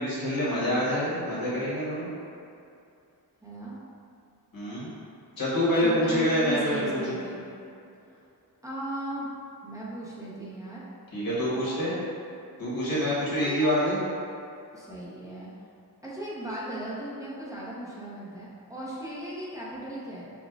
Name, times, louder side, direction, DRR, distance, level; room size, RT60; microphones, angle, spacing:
voice 1, 0.0-2.1 4.5-4.9 5.4-7.2 11.1-12.0 12.6-14.0, equal, 60° left, -8 dB, 1.3 m, -26 dB
voice 2, 3.4-3.8 5.8-7.4 8.6-9.3 9.6-10.8 13.3-13.8 14.7-15.5 16.0-20.3, right 1 dB, 10° right, -7 dB, 0.8 m, -37 dB
6.1 x 2.3 x 2.4 m, 2.6 s
wide cardioid pair, 125°, 39 cm